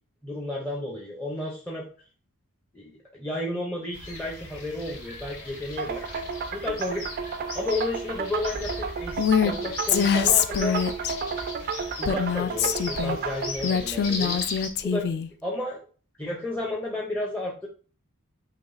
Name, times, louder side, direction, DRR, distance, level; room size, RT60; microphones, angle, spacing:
voice 1, 0.2-1.9 2.7-6.0 6.5-7.0 7.5-10.8 12.0-14.4 14.8-15.1 15.4-15.8 16.2-17.7, left 1 dB, 5° left, -3 dB, 0.6 m, -32 dB
sound 1, 3.9-14.7, left 2 dB, 75° left, 2.1 m, -38 dB
sound 2, 5.8-13.5, right 5 dB, 40° right, 0.3 m, -32 dB
Female speech woman speaking, 9.2-9.5 9.9-11.1 12.0-13.2 13.6-15.3, left 8 dB, 50° left, 0.3 m, -24 dB
5.8 x 3.0 x 2.5 m, 0.39 s
head